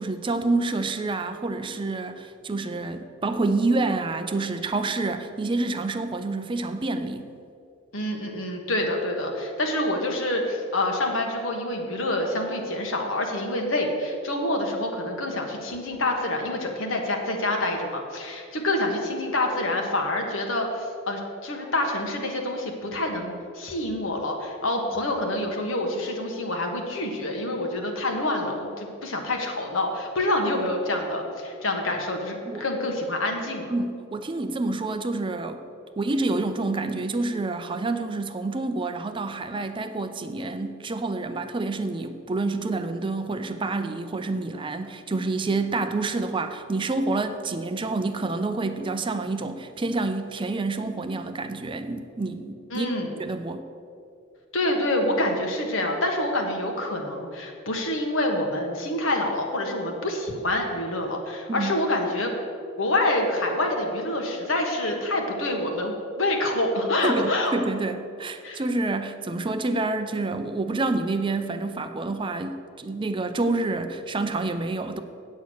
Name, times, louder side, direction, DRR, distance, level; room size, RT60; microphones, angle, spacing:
voice 1, 0.0-7.3 32.5-32.6 33.7-35.6 36.0-52.9 53.2-53.6 61.5-61.8 67.0-75.0, right 3 dB, 25° right, 9 dB, 0.5 m, -28 dB
voice 2, 7.9-33.7 52.7-53.1 54.5-62.3 62.8-67.5 68.4-68.6, left 1 dB, 75° left, 2 dB, 1.5 m, -27 dB
8.5 x 8.2 x 6.3 m, 2.4 s
head